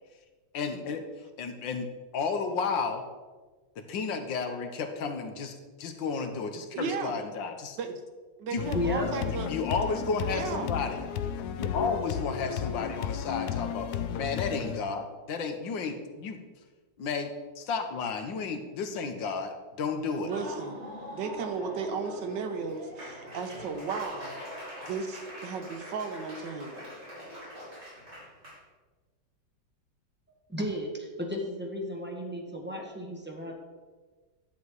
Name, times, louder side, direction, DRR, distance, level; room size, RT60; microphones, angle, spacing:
voice 1, 0.5-1.0 1.4-1.9 2.1-3.0 3.8-7.8 8.5-8.6 9.3-11.0 11.5-16.4 17.0-20.3, left 4 dB, 90° left, 6 dB, 1.8 m, -32 dB
voice 2, 6.7-7.2 7.8-8.0 8.4-9.6 10.2-10.7 20.2-20.8 21.1-24.4 24.8-26.8, right 5 dB, 75° right, 7 dB, 1.6 m, -35 dB
sound 1, 8.6-14.8, left 9 dB, 65° left, 1.1 m, -33 dB
voice 3, 8.7-9.1 30.5-33.5, left 1 dB, 5° right, -1 dB, 1.5 m, -33 dB
Laughter / Applause, 20.1-28.6, equal, 35° right, 4.1 m, -43 dB
11.0 x 7.3 x 4.8 m, 1.3 s
omnidirectional pair, 2.0 m